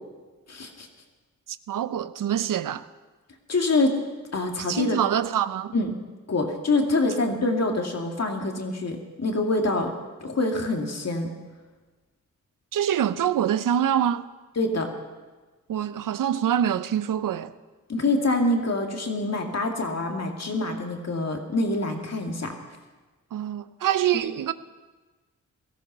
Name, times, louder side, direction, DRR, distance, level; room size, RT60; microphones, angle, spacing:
voice 1, 0.5-0.9 3.5-4.0 4.3-5.0 5.7-5.9 6.3-9.9 10.2-11.3 14.6-14.9 17.9-22.5, left 2 dB, 50° left, 2.4 m, -25 dB
voice 2, 1.5-2.9 4.7-5.7 12.7-14.3 15.7-17.5 23.3-24.5, right 10 dB, 80° right, 0.6 m, -25 dB
17.5 x 14.0 x 5.5 m
cardioid pair, 65°, 32 cm